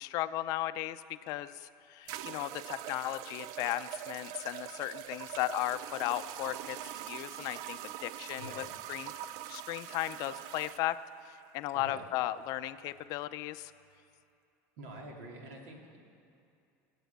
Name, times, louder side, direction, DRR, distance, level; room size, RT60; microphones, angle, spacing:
voice 1, 0.0-6.8 7.1-8.6 8.9-9.1 9.5-11.0 11.3-13.7, left 15 dB, 55° left, 13 dB, 0.5 m, -36 dB
sound 1, 1.3-1.4 2.1-10.8, right 13 dB, 60° right, 0.4 m, -43 dB
voice 2, 11.7-12.1 14.8-16.0, right 1 dB, 80° right, 1 dB, 2.7 m, -46 dB
19.0 x 8.2 x 8.1 m, 2.5 s
supercardioid pair, 135°, 7 cm